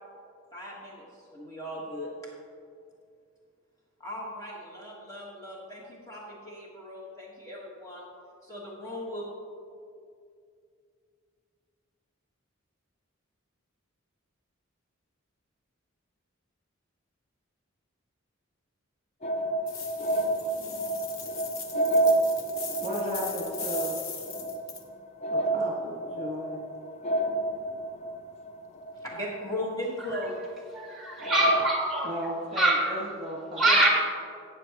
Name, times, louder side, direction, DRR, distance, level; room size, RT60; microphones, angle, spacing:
voice 1, 0.5-2.3 4.0-8.1 8.4-9.2 28.9-30.7 33.6-33.9, equal, 15° left, -5 dB, 1.4 m, -38 dB
sound 1, 19.2-30.1 30.5-30.6 31.2-31.7, right 2 dB, 30° left, 0.5 m, -30 dB
sound 2, 19.7-24.8, left 6 dB, 70° left, 0.9 m, -39 dB
voice 2, 22.7-24.0 25.3-26.6 32.0-33.6, equal, 35° right, -2 dB, 1.5 m, -35 dB
voice 3, 30.7-32.1 32.6-32.9 33.6-33.9, right 1 dB, ahead, -3 dB, 2.0 m, -23 dB
13.5 x 8.3 x 2.9 m, 2.3 s
head